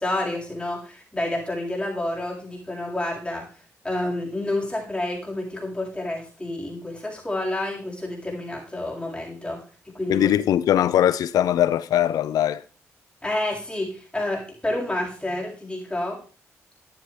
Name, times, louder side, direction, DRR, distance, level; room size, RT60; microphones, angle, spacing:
voice 1, 0.0-3.4 3.8-9.6 9.9-10.4 13.2-16.2, left 1 dB, 15° left, 7.9 m, -29 dB
voice 2, 10.1-12.6, left 11 dB, 75° left, 0.5 m, -21 dB
15.0 x 9.7 x 3.5 m
supercardioid pair, 45°, 6 cm